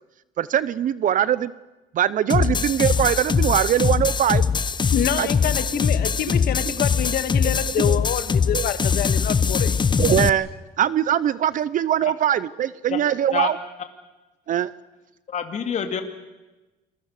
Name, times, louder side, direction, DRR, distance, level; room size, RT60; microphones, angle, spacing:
voice 1, 0.4-1.5 1.9-4.4 5.2-5.3 7.9-8.0 8.5-8.6 10.0-10.5 10.8-13.6 14.5-14.7, right 10 dB, 50° right, 18 dB, 0.7 m, -21 dB
sound 1, 2.3-10.3, left 6 dB, 25° left, 0.9 m, -22 dB
voice 2, 4.9-9.8, left 10 dB, 65° left, 11 dB, 1.8 m, -26 dB
voice 3, 15.3-16.0, left 7 dB, 45° left, 5 dB, 2.5 m, -27 dB
28.5 x 22.0 x 6.7 m, 1.1 s
cardioid pair, 110°, 17 cm